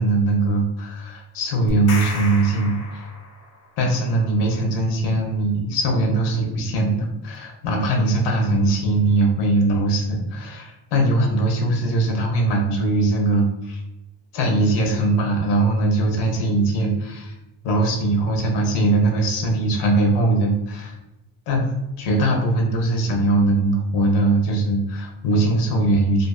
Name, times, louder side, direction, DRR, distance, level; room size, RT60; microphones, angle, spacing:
voice 1, 0.0-3.0 3.8-13.8 14.3-17.4 17.6-21.0 21.5-21.7 22.0-26.3, right 2 dB, 65° left, 1 dB, 0.8 m, -21 dB
sound 1, 1.7-3.7, left 3 dB, 35° left, 0.4 m, -33 dB
2.5 x 2.4 x 2.3 m, 0.92 s
cardioid pair, 130°, 45 cm